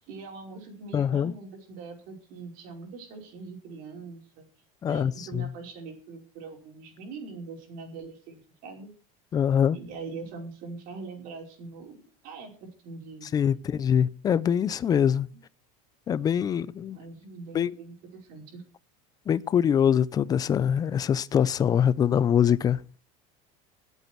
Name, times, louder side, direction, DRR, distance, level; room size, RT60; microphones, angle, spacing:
voice 1, 0.1-4.5 4.8-8.9 9.7-13.6 16.9-18.6, right 4 dB, 50° right, 5.2 m, -42 dB
voice 2, 0.9-1.3 4.8-5.4 9.3-9.8 13.3-15.3 16.1-17.0 17.5-17.7 19.3-22.8, left 8 dB, 20° left, 0.5 m, -24 dB
19.0 x 8.2 x 4.5 m
cardioid pair, 155°, 18 cm